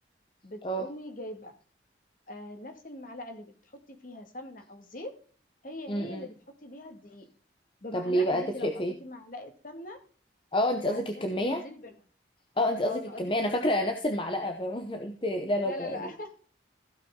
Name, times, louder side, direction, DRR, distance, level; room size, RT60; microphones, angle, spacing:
voice 1, 0.4-1.5 2.3-5.1 5.6-6.3 6.6-7.3 7.8-8.7 9.0-10.0 10.9-11.9 12.9-13.7 15.6-16.3, left 1 dB, 45° left, 5 dB, 2.1 m, -42 dB
voice 2, 5.9-6.2 7.9-9.0 10.5-11.6 12.6-16.1, equal, 30° left, 5 dB, 0.8 m, -29 dB
15.5 x 5.9 x 3.7 m, 0.41 s
head